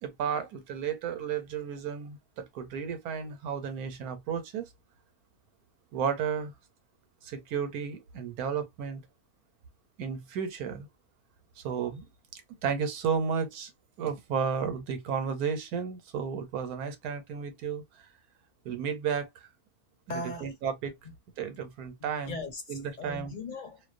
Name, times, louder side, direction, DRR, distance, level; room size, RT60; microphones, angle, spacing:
voice 1, 0.0-4.6 5.9-6.5 7.2-9.0 10.0-10.9 11.6-12.0 12.6-13.7 14.0-17.8 18.6-19.3 20.4-20.9 21.4-22.4 22.7-23.3, right 7 dB, 90° right, 1.2 m, -33 dB
voice 2, 20.1-20.5 22.0-23.8, left 2 dB, 40° left, 0.8 m, -39 dB
2.6 x 2.1 x 2.4 m
omnidirectional pair, 1.5 m